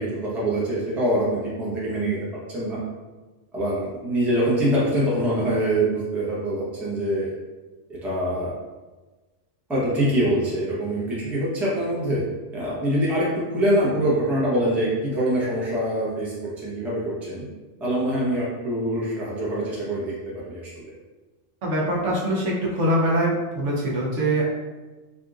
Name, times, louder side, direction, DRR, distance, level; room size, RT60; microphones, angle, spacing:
voice 1, 0.0-2.2 2.5-2.8 3.5-7.3 8.0-8.5 9.7-12.2 12.5-17.4 17.8-20.7, right 1 dB, ahead, -7 dB, 0.6 m, -24 dB
voice 2, 21.6-24.4, right 1 dB, 70° right, -4 dB, 1.0 m, -23 dB
3.6 x 2.6 x 2.4 m, 1.2 s
omnidirectional pair, 1.4 m